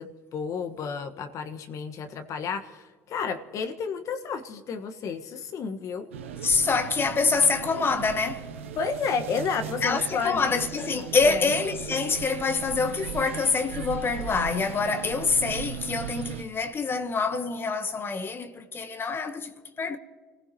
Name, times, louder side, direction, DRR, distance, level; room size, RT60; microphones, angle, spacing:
voice 1, 0.0-6.1 8.7-10.6 11.2-11.5, left 5 dB, 55° left, 1.4 m, -32 dB
sound 1, 6.1-16.4, right 9 dB, 85° right, 0.7 m, -38 dB
voice 2, 6.4-8.5 9.8-20.0, left 4 dB, 35° left, 1.2 m, -26 dB
29.5 x 16.0 x 3.0 m
hypercardioid pair, 65°, 7 cm